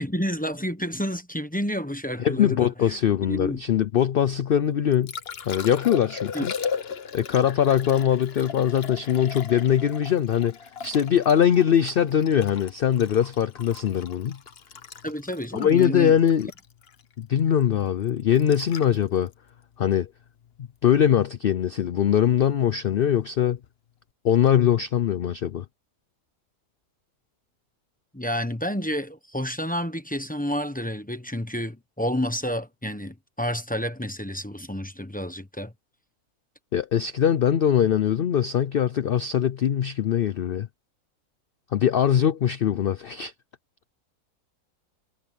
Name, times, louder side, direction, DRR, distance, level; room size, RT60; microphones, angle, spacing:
voice 1, 0.0-2.7 3.3-3.6 6.3-6.5 15.0-16.2 28.1-35.7, equal, 5° left, 0.9 m, -29 dB
voice 2, 2.2-5.1 5.4-6.5 7.1-10.6 10.8-14.4 15.5-16.5 17.2-19.3 19.8-20.1 20.8-23.6 24.2-25.6 36.7-40.7 41.7-43.3, left 9 dB, 65° left, 0.5 m, -22 dB
Liquid, 4.7-20.8 23.6-23.7, left 6 dB, 45° left, 1.1 m, -38 dB
omnidirectional pair, 1.6 m